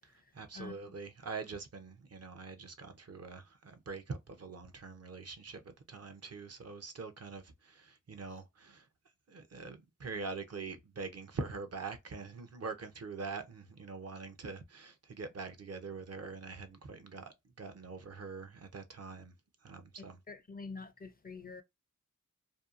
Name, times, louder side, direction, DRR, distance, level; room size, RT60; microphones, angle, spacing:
voice 1, 0.3-8.8 9.3-19.3 19.6-20.2, right 4 dB, 50° right, 0.6 m, -44 dB
voice 2, 20.3-21.6, left 4 dB, 30° left, 0.4 m, -45 dB
2.7 x 2.3 x 2.4 m
cardioid pair, 45°, 32 cm